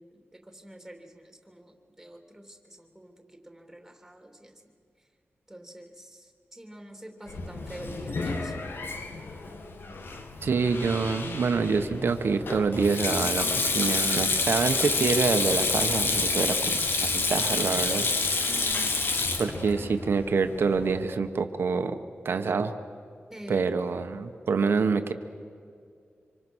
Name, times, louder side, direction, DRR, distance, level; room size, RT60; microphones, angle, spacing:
voice 1, 0.0-4.7 5.5-8.5 18.4-18.9 23.3-23.8, right 1 dB, 5° right, 3 dB, 3.3 m, -46 dB
Sink (filling or washing), 7.3-21.0, left 3 dB, 65° left, 2.1 m, -29 dB
voice 2, 10.4-18.5 19.4-22.0 22.2-22.7 23.5-25.1, right 5 dB, 70° right, 7 dB, 1.3 m, -26 dB
26.0 x 25.5 x 6.4 m, 2.3 s
wide cardioid pair, 105°, 4 cm